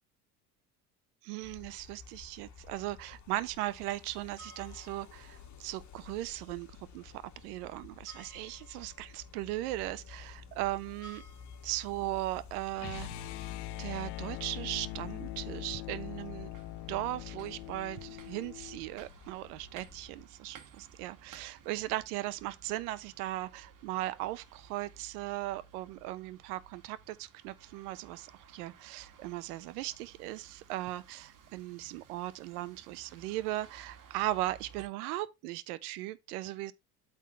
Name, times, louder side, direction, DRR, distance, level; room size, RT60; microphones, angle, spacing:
voice 1, 1.2-7.1 7.4-11.2 11.6-13.4 13.8-16.5 16.9-36.7, right 16 dB, 70° right, 1.0 m, -38 dB
sound 1, 1.4-20.2, left 5 dB, 35° left, 2.0 m, -52 dB
sound 2, 12.8-18.8, left 14 dB, 55° left, 1.0 m, -42 dB
sound 3, 16.5-34.9, right 6 dB, 40° right, 2.1 m, -57 dB
8.4 x 4.0 x 5.7 m
hypercardioid pair, 70°, 47 cm